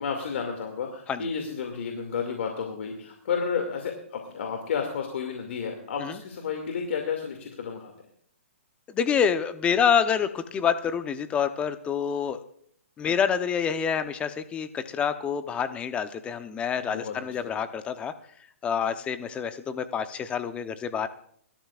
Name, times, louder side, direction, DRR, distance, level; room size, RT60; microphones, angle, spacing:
voice 1, 0.0-7.9 16.8-17.6, left 6 dB, 65° left, 3 dB, 2.4 m, -32 dB
voice 2, 8.9-12.4 13.0-18.1 18.6-21.1, left 7 dB, 15° left, 10 dB, 0.9 m, -27 dB
25.0 x 13.0 x 2.5 m, 0.62 s
hypercardioid pair, 145°, 7 cm